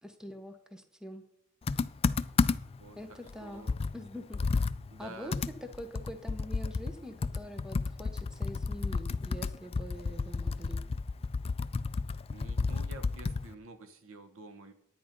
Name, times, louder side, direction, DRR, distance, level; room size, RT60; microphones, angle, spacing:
voice 1, 0.0-1.3 3.0-3.7 3.9-4.4 5.0-5.3 5.8-10.8, equal, 5° right, 7 dB, 0.9 m, -44 dB
Computer keyboard, 1.7-2.8 3.3-3.4 3.7-13.5, left 4 dB, 25° left, 0.3 m, -32 dB
voice 2, 3.4-3.7 4.9-5.4 12.3-14.7, right 2 dB, 65° right, 9 dB, 1.1 m, -49 dB
10.5 x 9.2 x 5.3 m, 0.74 s
head